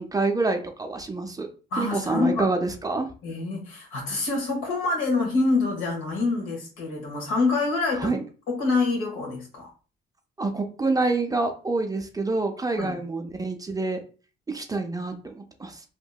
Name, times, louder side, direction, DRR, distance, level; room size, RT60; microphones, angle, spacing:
voice 1, 0.0-1.5 1.8-3.1 8.0-8.2 10.4-14.0 14.5-15.8, right 3 dB, 20° right, 5 dB, 0.4 m, -27 dB
voice 2, 1.7-2.5 3.2-8.2 8.5-9.7 12.8-13.0, left 3 dB, 85° left, 0 dB, 1.2 m, -26 dB
2.8 x 2.6 x 2.3 m, 0.36 s
cardioid pair, 90°, 20 cm